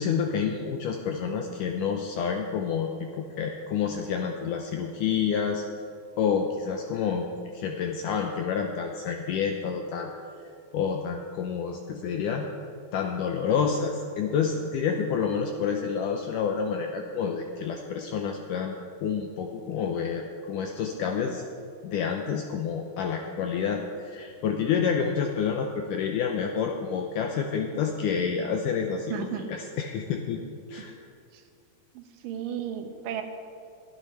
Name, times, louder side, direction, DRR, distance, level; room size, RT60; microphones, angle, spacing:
voice 1, 0.0-5.6 6.2-7.3 7.5-10.1 10.7-12.5 12.9-18.8 19.0-21.4 21.8-30.4 30.7-30.9, left 6 dB, 85° left, 3 dB, 1.9 m, -28 dB
voice 2, 29.1-29.5 30.8-30.9 31.3-31.4 31.9-33.2, right 8 dB, 70° right, 5 dB, 2.4 m, -34 dB
21.5 x 12.0 x 3.2 m, 2.4 s
omnidirectional pair, 4.5 m